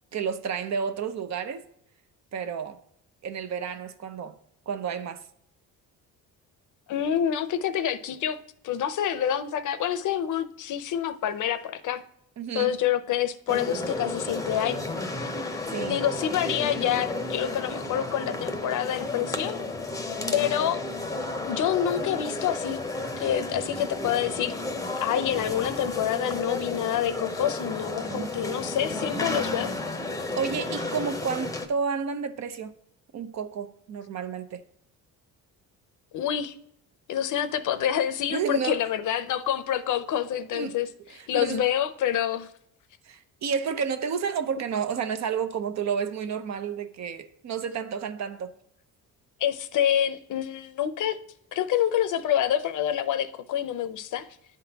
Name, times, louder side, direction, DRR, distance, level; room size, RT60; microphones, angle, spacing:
voice 1, 0.1-1.6 2.3-2.8 3.2-4.4 4.7-5.2 12.4-12.8 15.7-16.0 28.1-28.3 30.4-32.7 33.1-34.6 38.3-38.8 40.5-40.7 41.1-41.7 43.0-48.5, right 6 dB, 55° right, 0.7 m, -31 dB
voice 2, 6.9-8.4 8.6-12.0 12.5-14.8 15.9-19.6 20.3-20.8 21.4-22.8 23.2-24.5 25.0-29.7 36.1-36.5 37.1-40.9 41.3-42.5 49.4-51.2 51.5-54.3, left 10 dB, 60° left, 0.6 m, -27 dB
sound 1, 13.5-31.7, left 2 dB, 10° left, 0.7 m, -32 dB
11.0 x 3.7 x 2.8 m
cardioid pair, 110°, 34 cm